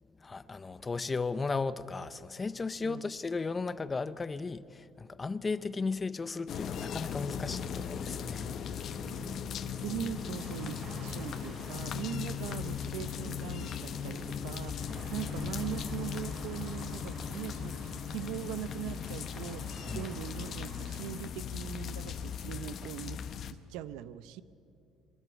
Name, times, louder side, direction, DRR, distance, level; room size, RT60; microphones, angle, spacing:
voice 1, 0.2-9.0 14.8-15.1 19.9-20.1, left 4 dB, 20° left, 0.6 m, -36 dB
sound 1, 6.5-23.5, left 8 dB, 45° left, 0.8 m, -38 dB
sound 2, 7.5-21.3, right 3 dB, 45° right, 3.3 m, -50 dB
voice 2, 9.0-24.4, right 11 dB, 90° right, 0.7 m, -41 dB
sound 3, 11.4-14.4 15.7-17.1, right 3 dB, 65° right, 3.5 m, -56 dB
25.0 x 12.5 x 9.7 m
cardioid pair, 150°, 0 cm